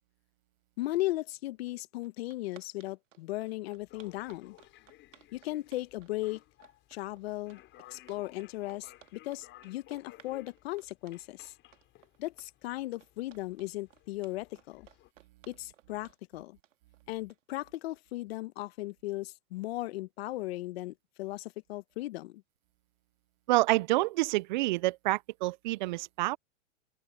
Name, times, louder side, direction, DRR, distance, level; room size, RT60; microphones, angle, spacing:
voice 1, 0.8-4.6 5.3-6.4 6.9-7.6 7.9-11.5 12.2-14.9 15.5-16.6 17.1-22.4, left 18 dB, 55° left, 1.0 m, -37 dB
sound 1, 1.7-1.8 2.0-17.6, right 11 dB, 85° right, 2.1 m, -60 dB
sound 2, 3.8-15.1, left 16 dB, 30° left, 7.1 m, -58 dB
voice 2, 23.5-26.4, right 19 dB, 40° right, 0.4 m, -28 dB
open air
hypercardioid pair, 140°, 37 cm